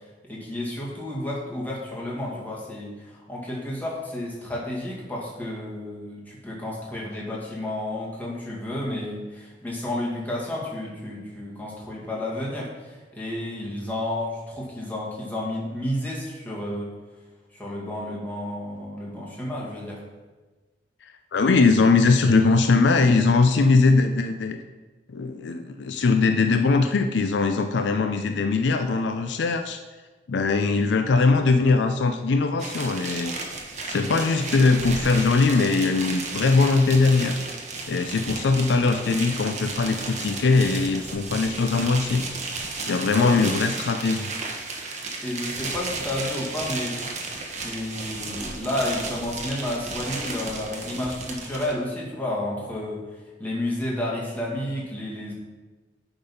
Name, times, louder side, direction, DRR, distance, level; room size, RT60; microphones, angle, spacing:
voice 1, 0.2-16.9 17.5-20.0 43.1-43.6 45.2-47.1 47.6-53.1 53.4-55.3, left 1 dB, 10° left, -5 dB, 2.0 m, -31 dB
voice 2, 21.0-24.6 25.1-29.8 30.3-33.3 33.9-37.4 37.9-42.3 42.9-44.3, left 3 dB, 65° left, 7 dB, 0.4 m, -21 dB
sound 1, 32.6-51.7, right 3 dB, 40° right, 1.2 m, -34 dB
10.0 x 4.0 x 5.4 m, 1.3 s
head